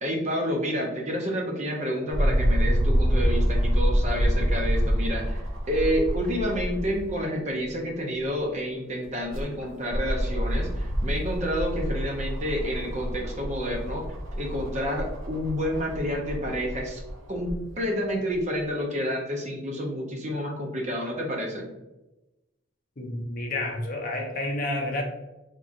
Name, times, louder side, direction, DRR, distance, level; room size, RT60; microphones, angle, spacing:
voice 1, 0.0-14.1 14.4-17.0 17.3-21.7, equal, 35° right, 0 dB, 0.6 m, -29 dB
sound 1, 2.1-7.1 7.6-7.7 9.0-17.6 18.3-18.4, equal, 75° right, 0.7 m, -27 dB
voice 2, 23.0-25.0, left 1 dB, 40° left, 1 dB, 0.6 m, -30 dB
3.7 x 2.9 x 2.5 m, 0.98 s
head